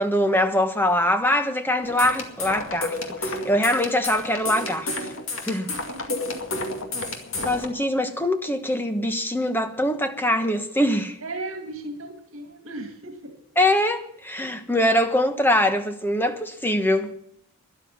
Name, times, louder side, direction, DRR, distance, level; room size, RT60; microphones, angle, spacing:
voice 1, 0.0-4.9 5.4-5.7 7.4-11.2 13.6-17.1, left 1 dB, 10° left, 1.2 m, -23 dB
sound 1, 1.8-7.7, left 2 dB, 65° left, 2.3 m, -31 dB
voice 2, 5.5-6.4 7.0-7.1 11.2-13.4 14.4-14.5, right 2 dB, 70° right, 2.0 m, -37 dB
12.5 x 11.5 x 7.4 m
head